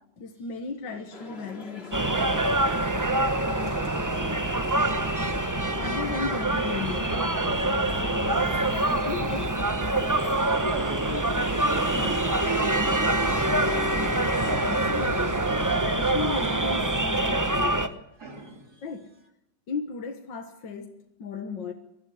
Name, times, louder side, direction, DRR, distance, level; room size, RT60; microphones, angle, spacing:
voice 1, 0.2-2.6 3.7-4.1 5.8-7.3 7.6-9.6 12.0-12.2 13.6-14.0 14.5-15.3 15.8-18.0 18.8-19.2 19.7-21.7, left 4 dB, 75° left, 2.2 m, -36 dB
sound 1, 1.1-15.8, left 2 dB, 30° left, 2.8 m, -43 dB
sound 2, 1.9-17.9, right 2 dB, 15° right, 0.7 m, -25 dB
voice 2, 10.1-13.7 18.2-18.9, right 2 dB, 55° right, 3.6 m, -40 dB
23.5 x 13.0 x 9.6 m
omnidirectional pair, 2.0 m